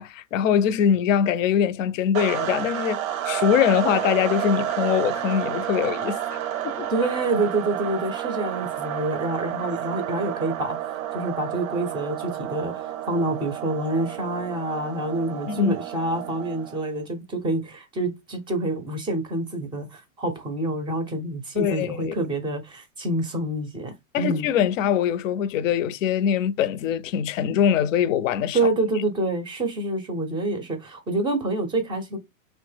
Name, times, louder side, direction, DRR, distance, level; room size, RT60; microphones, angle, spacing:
voice 1, 0.0-6.4 6.6-6.9 15.5-15.7 21.6-22.1 24.1-28.6, left 9 dB, 65° left, 0.5 m, -23 dB
sound 1, 2.1-16.9, right 11 dB, 75° right, 0.6 m, -30 dB
voice 2, 6.9-10.8 11.1-24.5 28.5-32.2, right 2 dB, 10° right, 0.4 m, -27 dB
2.9 x 2.1 x 3.2 m
hypercardioid pair, 125°, 41 cm